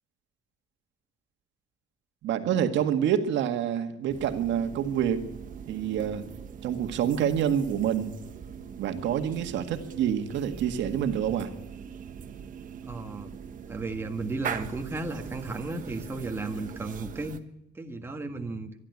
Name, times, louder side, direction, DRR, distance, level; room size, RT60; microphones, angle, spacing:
voice 1, 2.2-5.3 5.7-6.3 6.6-8.2 8.8-11.5, right 9 dB, 60° right, 8 dB, 1.9 m, -27 dB
sound 1, 4.1-17.4, right 8 dB, 40° right, 1.3 m, -41 dB
voice 2, 12.8-13.3 13.7-17.4 17.7-18.7, right 3 dB, 10° right, 4 dB, 1.6 m, -34 dB
24.0 x 12.0 x 9.5 m, 0.86 s
cardioid pair, 150°, 21 cm